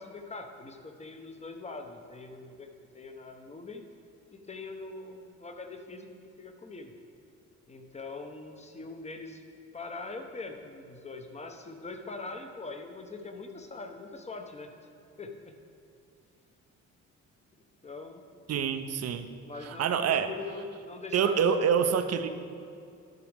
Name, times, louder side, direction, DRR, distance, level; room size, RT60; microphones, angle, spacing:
voice 1, 0.0-2.7 2.9-3.8 4.3-6.1 6.4-6.9 7.7-9.4 9.7-14.7 15.2-15.5 17.8-18.3 19.4-21.7 22.3-22.4, left 3 dB, 20° left, 5 dB, 0.9 m, -42 dB
voice 2, 18.5-19.3 19.6-20.3 21.1-22.3, right 7 dB, 55° right, 9 dB, 0.7 m, -26 dB
13.0 x 6.1 x 3.5 m, 2.4 s
cardioid pair, 90°, 30 cm